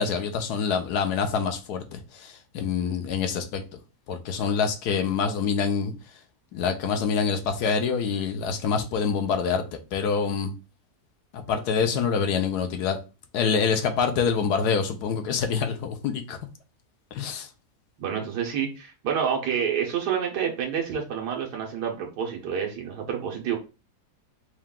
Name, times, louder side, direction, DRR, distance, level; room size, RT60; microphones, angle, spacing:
voice 1, 0.0-3.6 4.1-5.9 6.5-10.5 11.3-13.0 13.3-16.4 17.1-17.5, left 6 dB, 85° left, 1.2 m, -26 dB
voice 2, 18.0-23.6, right 7 dB, 85° right, 1.4 m, -28 dB
4.6 x 2.3 x 3.6 m
omnidirectional pair, 1.7 m